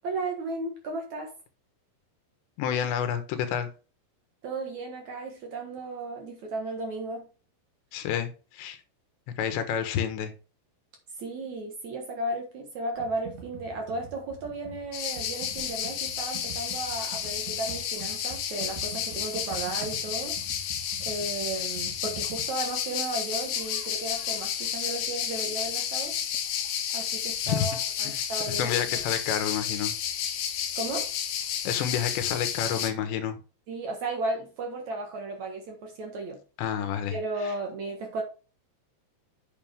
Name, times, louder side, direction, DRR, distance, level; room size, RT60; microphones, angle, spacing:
voice 1, 0.0-1.3 4.4-7.3 11.2-20.4 21.0-26.2 26.9-29.0 30.8-31.1 33.7-36.4 37.1-38.2, right 2 dB, 55° right, 2.3 m, -34 dB
voice 2, 2.6-3.7 7.9-8.8 9.4-10.3 27.5-27.7 28.0-28.2 28.6-30.0 31.7-33.4 36.6-37.2, left 9 dB, 85° left, 3.6 m, -29 dB
Computer keyboard, 13.0-22.5, right 6 dB, 80° right, 4.1 m, -44 dB
sound 1, 14.9-32.9, left 9 dB, 65° left, 2.6 m, -31 dB
9.0 x 6.8 x 3.5 m
omnidirectional pair, 4.9 m